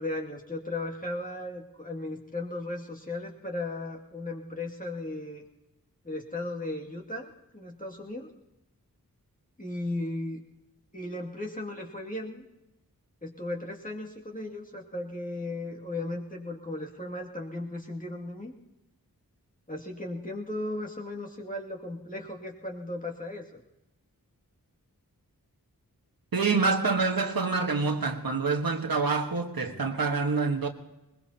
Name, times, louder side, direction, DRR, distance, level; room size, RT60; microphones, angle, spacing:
voice 1, 0.0-5.4 6.0-8.3 9.6-10.4 10.9-12.4 13.2-18.5 19.7-23.6, left 2 dB, 25° left, 2.3 m, -36 dB
voice 2, 26.3-30.7, right 4 dB, 75° right, 1.4 m, -26 dB
21.0 x 20.5 x 2.8 m
wide cardioid pair, 60°, 36 cm